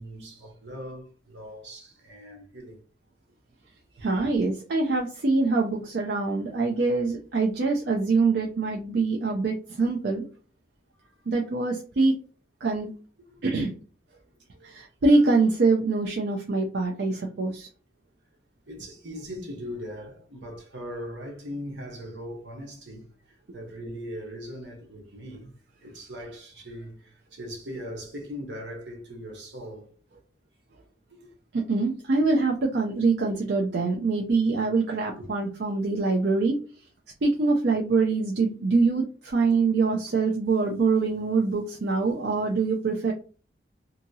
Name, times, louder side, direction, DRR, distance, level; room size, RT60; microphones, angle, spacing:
voice 1, 0.0-2.8 4.0-4.1 11.0-11.1 13.5-13.6 14.2-14.8 18.7-25.5 25.8-29.9 31.1-31.3 35.2-35.3 39.5-39.6, equal, 80° right, 1.0 m, -40 dB
voice 2, 4.0-10.2 11.3-12.1 12.6-12.9 13.4-13.7 14.6-17.7 31.5-36.6 37.2-43.1, right 3 dB, 65° right, 0.5 m, -24 dB
2.8 x 2.7 x 2.6 m
head